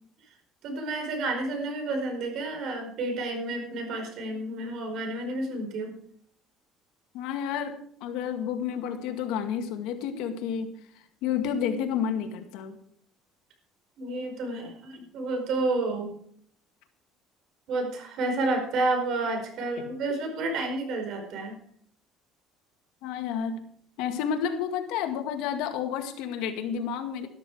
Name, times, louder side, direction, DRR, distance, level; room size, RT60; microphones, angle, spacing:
voice 1, 0.6-5.9 14.0-16.1 17.7-21.5, right 2 dB, 60° right, 4 dB, 4.9 m, -30 dB
voice 2, 7.1-10.7 11.2-12.8 23.0-23.7 24.0-27.3, left 8 dB, 85° left, 6 dB, 2.1 m, -30 dB
13.5 x 12.5 x 4.9 m, 0.63 s
cardioid pair, 145°, 0 cm